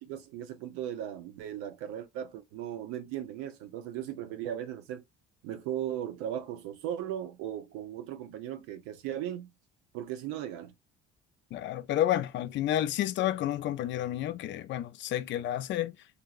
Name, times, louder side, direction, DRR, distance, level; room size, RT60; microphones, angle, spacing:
voice 1, 0.0-5.0 5.4-9.5 9.9-10.7, right 11 dB, 85° right, 0.6 m, -37 dB
voice 2, 11.5-16.0, left 12 dB, 60° left, 0.4 m, -30 dB
2.9 x 2.6 x 2.4 m
supercardioid pair, 85°, 21 cm